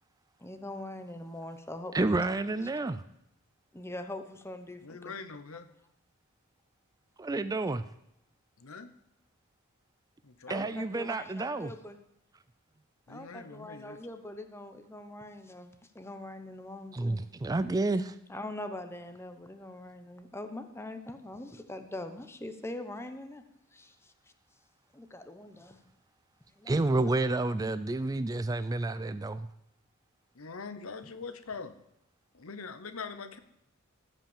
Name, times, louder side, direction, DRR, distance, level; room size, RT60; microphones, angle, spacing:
voice 1, 0.4-2.3 3.7-5.1 10.5-12.0 13.1-17.2 18.3-23.4 23.7-24.1 24.9-25.8 26.6-26.7 27.0-27.1, left 1 dB, 10° left, 8 dB, 0.9 m, -43 dB
voice 2, 1.9-3.0 7.2-7.8 10.5-11.7 16.9-18.2 26.7-29.5, right 2 dB, 15° right, 13 dB, 0.3 m, -30 dB
voice 3, 4.8-5.7 8.6-8.9 10.2-10.8 13.1-14.0 26.8-26.9 30.3-31.8 32.3-33.4, left 4 dB, 75° left, 11 dB, 0.9 m, -43 dB
15.0 x 5.5 x 7.3 m, 0.81 s
head